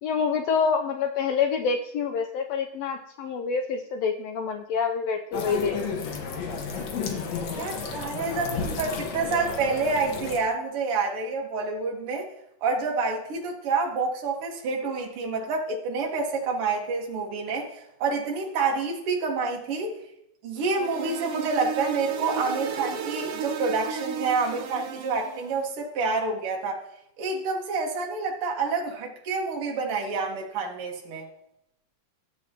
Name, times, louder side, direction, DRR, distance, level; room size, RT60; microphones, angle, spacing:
voice 1, 0.0-6.0, left 6 dB, 85° left, 5 dB, 1.5 m, -27 dB
sound 1, 5.3-10.4, left 5 dB, 65° left, 2.2 m, -32 dB
voice 2, 7.6-12.3 12.6-19.9 20.4-26.8 27.2-31.3, right 4 dB, 55° right, 0 dB, 2.0 m, -28 dB
sound 2, 20.7-25.5, right 6 dB, 80° right, 1.3 m, -34 dB
13.5 x 7.6 x 2.8 m, 0.79 s
omnidirectional pair, 3.5 m